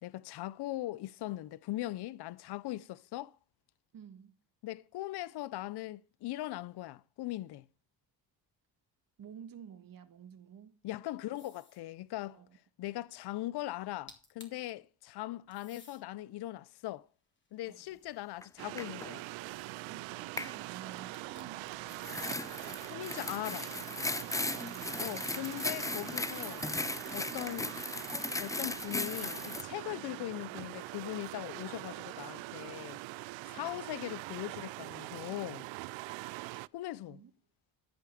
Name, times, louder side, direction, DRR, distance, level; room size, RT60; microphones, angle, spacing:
voice 1, 0.0-3.4 4.6-7.7 10.8-12.4 12.8-17.1 17.5-19.3 22.9-23.7 25.0-26.6 27.1-27.7 28.4-33.0 33.5-35.7 36.7-37.2, left 16 dB, 60° left, 0.6 m, -40 dB
voice 2, 3.9-4.3 9.2-10.8 12.3-12.6 17.7-18.0 19.9-22.0 24.4-26.2 30.0-30.3 33.5-33.8 37.1-37.3, right 8 dB, 50° right, 1.6 m, -53 dB
sound 1, 11.4-11.9 13.8-13.9 14.1-14.7 15.5-16.0 16.7-18.2 21.1-21.7, left 3 dB, 25° left, 3.0 m, -57 dB
sound 2, 18.4-18.5 18.8-19.1 20.4-20.5 21.9-29.6, left 2 dB, 10° left, 0.5 m, -37 dB
sound 3, 18.6-36.7, right 20 dB, 85° right, 0.5 m, -43 dB
13.5 x 4.8 x 6.9 m
cardioid pair, 80°, 45 cm